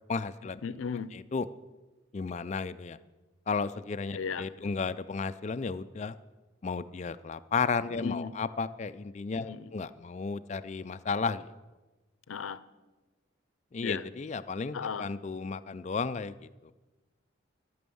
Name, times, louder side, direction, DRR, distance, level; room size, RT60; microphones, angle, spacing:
voice 1, 0.1-0.6 1.3-1.5 2.1-3.0 3.5-6.1 6.6-11.5 13.7-16.5, left 4 dB, 35° left, 12 dB, 0.3 m, -33 dB
voice 2, 0.6-1.1 4.1-4.7 7.9-8.3 9.4-9.7 12.3-12.6 13.8-14.1 14.7-15.1, left 6 dB, 85° left, 16 dB, 0.5 m, -36 dB
13.0 x 6.2 x 6.9 m, 1.2 s
head